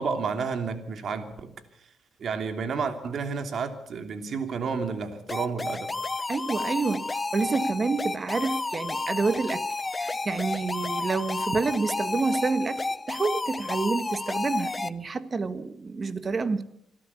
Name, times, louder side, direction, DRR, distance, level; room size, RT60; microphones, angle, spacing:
voice 1, 0.0-1.5 2.2-5.9, right 5 dB, 55° right, 7 dB, 3.0 m, -31 dB
sound 1, 5.3-14.9, left 3 dB, 20° left, 0.8 m, -31 dB
voice 2, 6.3-9.6 10.0-16.6, right 4 dB, 35° right, 13 dB, 1.4 m, -28 dB
27.0 x 12.5 x 8.4 m, 0.77 s
cardioid pair, 90°, 0 cm